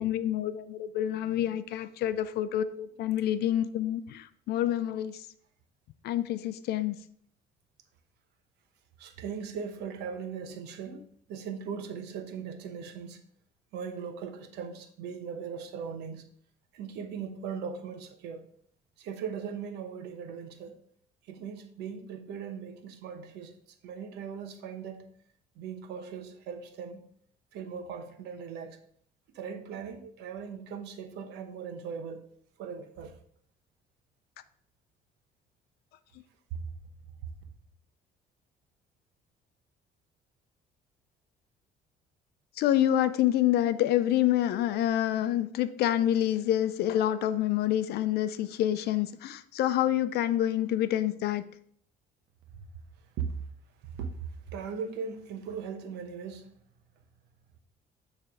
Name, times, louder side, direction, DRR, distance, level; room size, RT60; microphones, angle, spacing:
voice 1, 0.0-5.3 6.0-7.0 42.6-51.5, left 12 dB, 70° left, 0.6 m, -27 dB
voice 2, 9.0-13.2 13.7-16.2 16.7-18.5 19.0-20.7 21.3-23.5 23.8-25.1 25.6-27.1 27.5-28.8 29.3-32.2 32.6-33.1 53.2-53.3 53.9-54.1 54.5-56.5, right 6 dB, 85° right, 0.9 m, -39 dB
9.2 x 3.4 x 4.7 m
cardioid pair, 110°, 17 cm